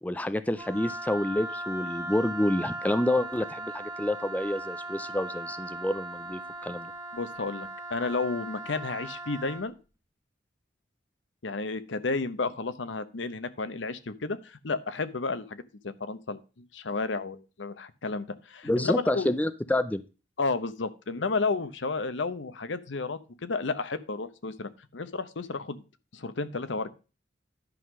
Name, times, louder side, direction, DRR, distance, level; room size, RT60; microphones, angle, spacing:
voice 1, 0.0-6.9 18.6-20.0, left 1 dB, 10° left, 12 dB, 0.4 m, -28 dB
Wind instrument woodwind instrument, 0.6-9.6, right 2 dB, 20° right, 1.6 m, -38 dB
voice 2, 7.1-9.7 11.4-19.4 20.4-25.8 26.1-26.9, left 3 dB, 80° left, 13 dB, 0.8 m, -32 dB
11.0 x 3.8 x 6.2 m, 0.32 s
head